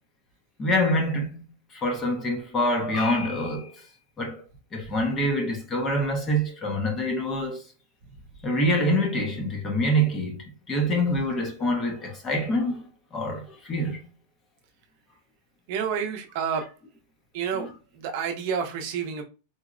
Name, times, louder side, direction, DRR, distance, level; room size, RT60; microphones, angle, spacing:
voice 1, 0.6-1.4 1.7-3.9 4.2-4.4 4.7-7.6 8.4-12.8 13.1-14.1 17.6-17.7, equal, 15° left, 0.6 m, -26 dB
voice 2, 15.7-16.7 17.3-17.7 17.9-19.2, right 7 dB, 45° right, 0.6 m, -29 dB
3.9 x 2.0 x 2.4 m
supercardioid pair, 170°, 0 cm